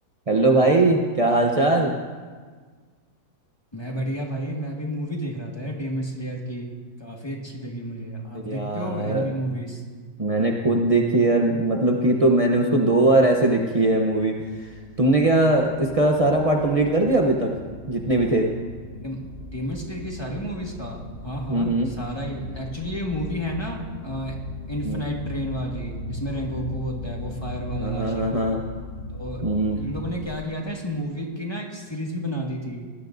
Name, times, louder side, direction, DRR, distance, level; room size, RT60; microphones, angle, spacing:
voice 1, 0.3-1.9 8.5-9.3 10.2-17.5 17.9-18.5 21.5-21.9 24.8-25.0 27.8-28.6 29.4-29.8, right 2 dB, 60° right, 0 dB, 0.3 m, -20 dB
voice 2, 3.7-6.7 7.0-9.8 19.0-24.4 24.7-28.4 29.1-29.4 29.8-32.9, equal, 15° left, -1 dB, 1.6 m, -31 dB
sound 1, 13.7-30.5, left 2 dB, 40° left, 0.8 m, -38 dB
19.5 x 12.5 x 2.6 m, 1.5 s
omnidirectional pair, 2.0 m